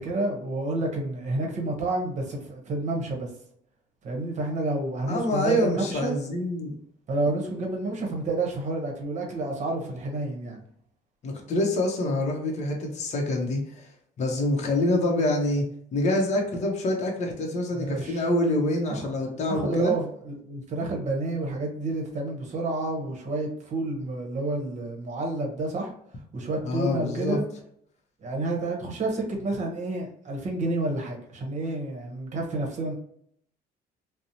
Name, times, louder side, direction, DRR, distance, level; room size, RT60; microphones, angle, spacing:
voice 1, 0.0-3.3 4.0-6.1 7.1-10.6 17.7-18.2 18.9-25.9 26.3-27.4 28.2-32.9, right 2 dB, 45° right, 1 dB, 0.8 m, -30 dB
voice 2, 5.1-6.8 11.2-13.9 14.2-15.7 15.9-19.9 26.6-27.4, left 1 dB, 40° left, 1 dB, 0.6 m, -26 dB
2.7 x 2.0 x 2.6 m, 0.68 s
cardioid pair, 110°, 17 cm